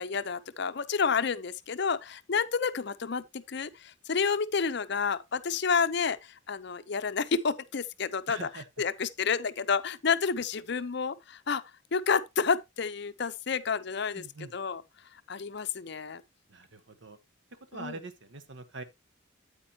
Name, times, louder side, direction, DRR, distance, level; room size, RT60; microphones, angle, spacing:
voice 1, 0.0-8.4 8.8-11.6 11.9-14.2 14.5-14.8 15.3-16.2 17.7-17.9, left 5 dB, 55° left, 0.6 m, -30 dB
voice 2, 8.3-8.7 14.1-14.5 16.5-17.2 17.5-18.8, right 3 dB, 65° right, 1.1 m, -43 dB
8.8 x 8.7 x 2.8 m
head